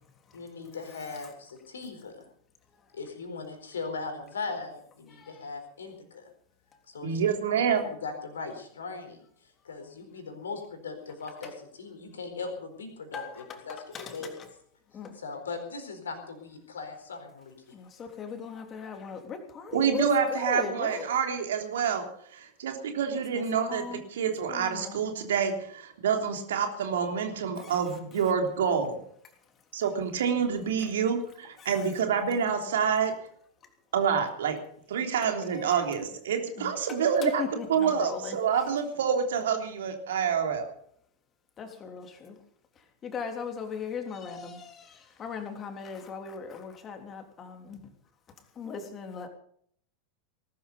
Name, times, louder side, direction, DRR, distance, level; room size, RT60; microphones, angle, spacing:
voice 1, 0.3-2.3 2.9-6.3 6.9-7.2 7.7-9.2 9.6-14.4 15.1-17.7, left 4 dB, 70° left, 5 dB, 4.3 m, -39 dB
voice 2, 5.1-5.4 11.4-11.5 13.1-14.5 14.9-15.1 17.7-21.0 23.1-24.0 24.5-25.0 27.6-27.8 31.6-31.9 35.2-35.8 36.6-38.4 41.6-42.4 43.0-47.9 48.5-49.3, left 6 dB, 25° left, 5 dB, 3.3 m, -38 dB
voice 3, 7.0-7.9 19.7-22.0 22.3-29.0 29.7-33.1 33.9-34.6 34.9-37.4 37.7-40.7, right 7 dB, 60° right, 4 dB, 3.4 m, -27 dB
19.5 x 12.5 x 5.4 m, 0.64 s
figure-of-eight pair, 90°, 0 cm